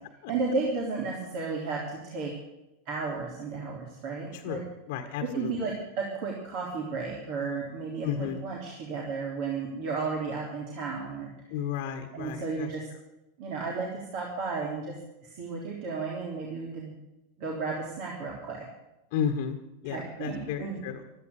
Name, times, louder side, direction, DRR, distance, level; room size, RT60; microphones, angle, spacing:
voice 1, 0.3-2.3 2.8-4.6 5.2-11.3 12.1-12.9 13.4-14.9 15.2-16.9 17.4-18.6 19.8-20.8, right 4 dB, 50° right, -2 dB, 3.5 m, -33 dB
voice 2, 4.3-5.5 8.0-8.4 11.5-12.7 19.1-21.0, left 8 dB, 55° left, 5 dB, 1.5 m, -33 dB
15.5 x 13.0 x 6.7 m, 0.95 s
figure-of-eight pair, 90°, 0 cm